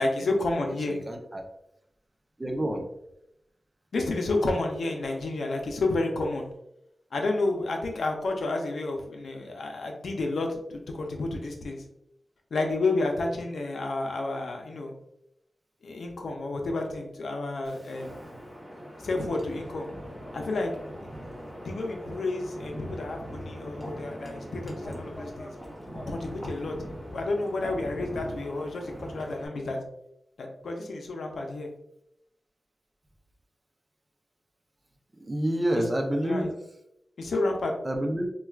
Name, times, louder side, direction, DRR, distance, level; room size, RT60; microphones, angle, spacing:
voice 1, 0.0-0.9 3.9-6.4 7.1-11.8 12.5-14.9 15.8-18.1 19.0-19.9 20.3-20.8 21.6-25.5 26.1-29.8 30.4-31.7 36.2-36.5 37.2-37.7, left 2 dB, 90° left, 2 dB, 0.5 m, -30 dB
voice 2, 0.9-1.4 2.4-2.8 5.0-5.2 35.2-36.5 37.8-38.3, right 1 dB, 25° right, 2 dB, 0.6 m, -29 dB
Wind, 17.6-29.5, equal, ahead, 1.0 m, -41 dB
4.3 x 2.3 x 2.3 m, 0.81 s
wide cardioid pair, 85°, 0 cm